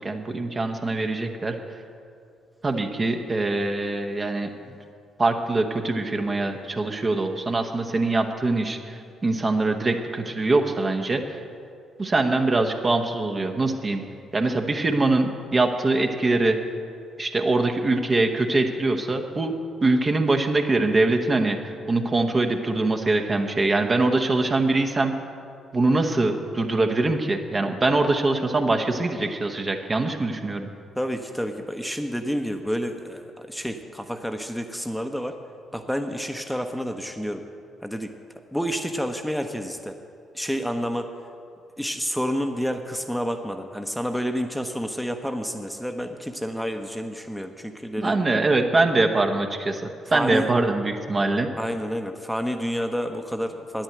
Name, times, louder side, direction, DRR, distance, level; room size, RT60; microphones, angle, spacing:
voice 1, 0.0-1.6 2.6-4.5 5.2-11.4 12.0-14.0 14.3-16.6 17.2-19.5 19.8-21.6 21.9-25.1 25.7-30.7 48.0-51.5, right 2 dB, 35° right, 5 dB, 1.0 m, -23 dB
voice 2, 31.0-35.4 35.7-37.4 37.8-38.1 38.5-40.0 40.3-41.1 41.8-48.1 50.1-50.5 51.6-53.8, equal, ahead, 6 dB, 0.9 m, -29 dB
10.5 x 9.9 x 7.9 m, 2.4 s
figure-of-eight pair, 40°, 0 cm